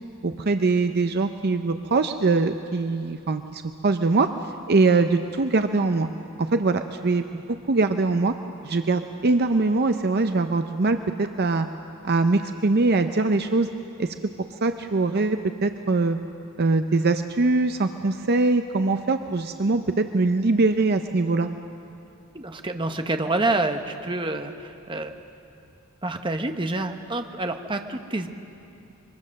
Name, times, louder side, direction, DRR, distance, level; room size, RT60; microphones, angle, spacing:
voice 1, 0.2-4.3 4.7-6.1 6.4-8.3 8.6-11.7 12.0-13.7 14.0-14.1 14.6-16.2 16.6-21.5, right 3 dB, 50° right, 8 dB, 0.6 m, -22 dB
voice 2, 22.3-25.1 26.0-28.3, right 2 dB, 25° right, 6 dB, 1.0 m, -27 dB
23.0 x 23.0 x 6.5 m, 2.7 s
head